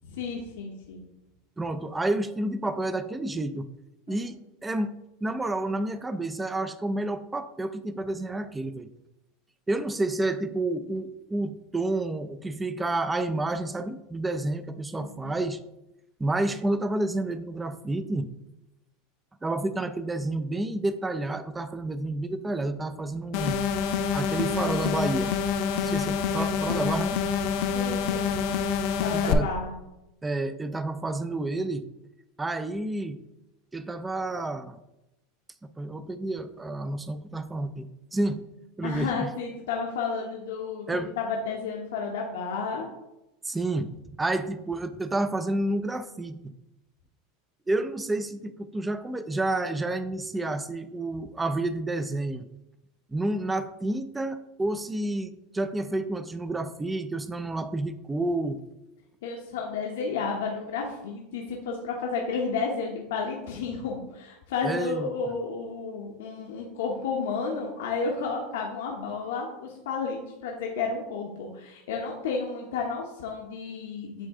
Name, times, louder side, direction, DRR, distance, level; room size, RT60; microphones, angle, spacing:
voice 1, 0.1-1.0 4.1-4.2 15.0-15.4 27.7-28.6 29.0-29.7 38.8-40.9 41.2-42.9 59.2-74.3, left 5 dB, 85° left, 0 dB, 0.9 m, -32 dB
voice 2, 1.6-3.7 4.1-4.9 5.2-8.9 9.7-15.6 16.2-18.3 19.4-23.6 24.1-25.3 25.8-27.2 29.1-29.5 30.2-31.9 32.4-33.2 33.7-34.8 35.8-38.5 38.8-39.3 40.9-41.1 43.4-46.5 47.7-52.4 53.1-58.6 64.6-65.1, right 2 dB, 10° right, 12 dB, 0.3 m, -30 dB
sound 1, 23.3-29.3, left 6 dB, 55° left, 0.5 m, -27 dB
8.1 x 3.2 x 3.6 m, 0.92 s
supercardioid pair, 150°, 0 cm